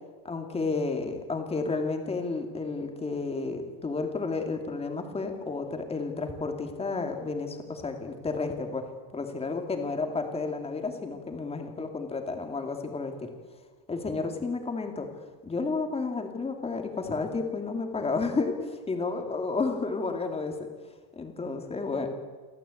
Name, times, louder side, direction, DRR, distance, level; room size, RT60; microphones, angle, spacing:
voice 1, 0.2-8.9 9.1-13.3 13.9-15.1 15.4-20.6 21.2-22.1, left 3 dB, 15° left, 4 dB, 2.5 m, -31 dB
29.0 x 13.5 x 8.5 m, 1.5 s
cardioid pair, 175°, 46 cm